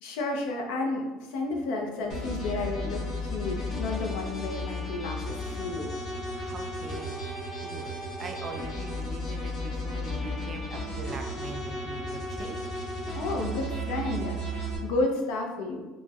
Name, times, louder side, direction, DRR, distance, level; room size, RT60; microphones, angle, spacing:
voice 1, 0.0-5.9 13.1-15.8, left 2 dB, 85° left, 2 dB, 0.5 m, -32 dB
sound 1, 2.1-14.8, left 1 dB, 65° left, 1.5 m, -34 dB
voice 2, 6.3-7.2 7.5-7.9 8.2-13.0, right 3 dB, 35° right, 4 dB, 0.4 m, -42 dB
4.3 x 2.1 x 2.3 m, 1.2 s
cardioid pair, 115°, 0 cm